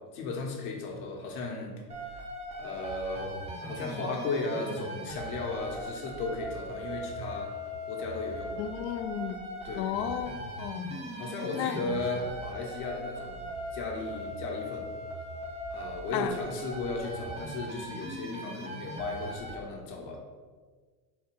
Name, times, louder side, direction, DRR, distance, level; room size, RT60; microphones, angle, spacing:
voice 1, 0.1-1.7 2.6-7.5 7.9-8.6 9.6-10.2 11.1-14.8 15.7-20.2, left 3 dB, 65° left, 0 dB, 1.1 m, -35 dB
sound 1, 1.9-19.5, right 1 dB, 15° right, 0.4 m, -40 dB
voice 2, 8.6-9.4 9.7-11.0 11.5-12.0 16.1-16.3, left 9 dB, 80° left, 9 dB, 0.6 m, -33 dB
4.1 x 2.4 x 4.6 m, 1.5 s
supercardioid pair, 115°, 49 cm